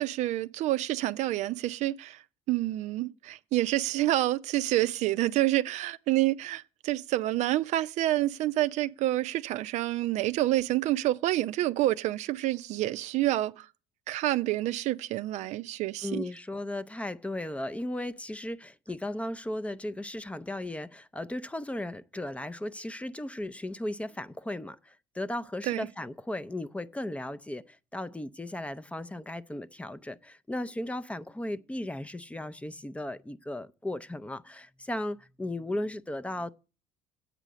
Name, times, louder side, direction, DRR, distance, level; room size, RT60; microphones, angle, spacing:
voice 1, 0.0-2.2 2.5-13.7 14.1-16.2 25.6-25.9, right 15 dB, 60° right, 0.5 m, -28 dB
voice 2, 16.0-36.5, left 1 dB, 10° left, 0.5 m, -36 dB
8.2 x 4.9 x 7.6 m
supercardioid pair, 80°, 13 cm